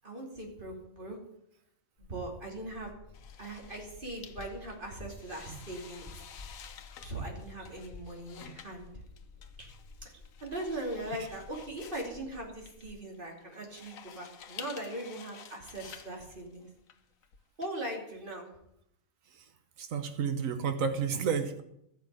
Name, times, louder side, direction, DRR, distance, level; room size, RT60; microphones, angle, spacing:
voice 1, 0.0-1.2 2.0-2.9 3.4-6.1 7.0-8.9 9.6-9.7 10.0-10.1 10.4-16.7 17.6-18.5, right 1 dB, 40° right, 0 dB, 3.0 m, -40 dB
sound 1, 2.0-13.0, left 3 dB, 30° left, 1.1 m, -52 dB
sound 2, 3.1-17.7, left 8 dB, 80° left, 1.3 m, -51 dB
voice 2, 19.8-21.6, right 6 dB, 75° right, 7 dB, 1.5 m, -31 dB
13.0 x 6.0 x 8.8 m, 0.76 s
omnidirectional pair, 1.4 m